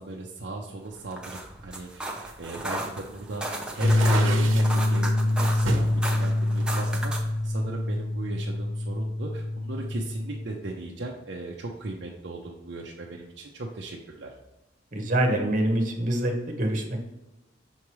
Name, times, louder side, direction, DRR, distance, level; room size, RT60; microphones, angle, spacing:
voice 1, 0.0-7.1 7.4-14.3, right 2 dB, 60° right, -1 dB, 0.6 m, -37 dB
sound 1, 1.0-7.4, right 1 dB, 5° right, 0.6 m, -35 dB
sound 2, 3.7-4.8 5.7-5.9 6.6-7.6, right 3 dB, 85° right, 0.9 m, -32 dB
sound 3, 3.8-10.5, left 1 dB, 75° left, 0.9 m, -25 dB
voice 2, 14.9-17.0, right 1 dB, 40° right, 1 dB, 1.1 m, -25 dB
6.3 x 4.8 x 3.1 m, 1.0 s
head